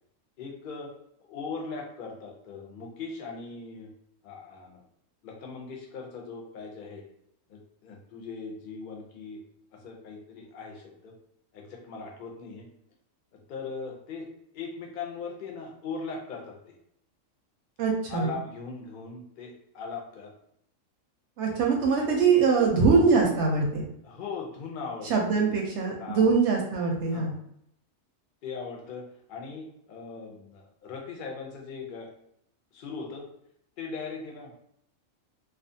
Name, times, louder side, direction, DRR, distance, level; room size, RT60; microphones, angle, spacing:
voice 1, 0.4-0.9 1.3-3.9 4.2-4.8 5.2-7.0 7.5-9.4 9.7-11.1 11.5-12.7 13.3-14.3 14.5-16.8 18.1-20.3 24.0-25.1 25.4-25.5 26.0-26.3 27.1-27.4 28.4-32.1 32.7-33.2 33.8-34.5, left 4 dB, 55° left, 0 dB, 0.6 m, -39 dB
voice 2, 17.8-18.3 21.4-23.9 25.1-27.3, right 4 dB, 65° right, 0 dB, 0.8 m, -23 dB
2.4 x 2.3 x 2.6 m, 0.73 s
omnidirectional pair, 1.4 m